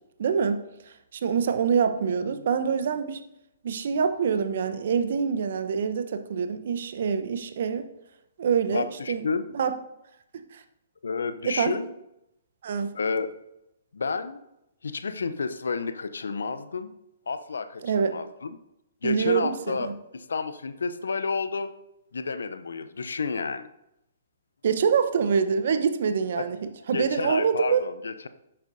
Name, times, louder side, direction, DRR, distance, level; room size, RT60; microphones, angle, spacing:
voice 1, 0.2-3.2 3.6-7.8 8.4-9.2 9.5-9.7 10.5-10.6 11.4-11.8 12.6-12.9 17.8-18.2 19.0-19.9 24.6-27.8, right 6 dB, 60° right, 9 dB, 0.9 m, -25 dB
voice 2, 8.7-9.4 11.0-11.9 12.9-13.3 13.9-14.4 14.8-16.9 17.3-18.5 19.0-21.7 22.1-23.7 26.4-26.5 26.9-28.3, left 4 dB, 75° left, 11 dB, 0.6 m, -30 dB
11.5 x 8.8 x 2.7 m, 0.85 s
figure-of-eight pair, 120°, 0 cm